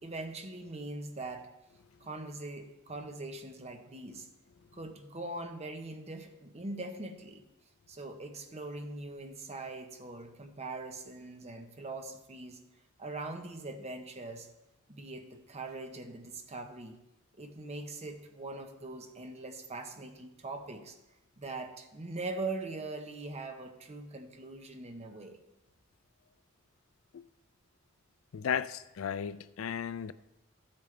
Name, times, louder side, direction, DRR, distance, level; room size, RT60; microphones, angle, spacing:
voice 1, 0.0-1.5 2.0-4.3 4.7-7.4 7.9-12.6 13.0-14.5 14.9-17.0 17.4-21.0 21.4-25.4, right 2 dB, 35° right, 1.0 m, -42 dB
voice 2, 28.3-30.1, left 7 dB, 85° left, 0.4 m, -35 dB
14.0 x 8.5 x 3.3 m
head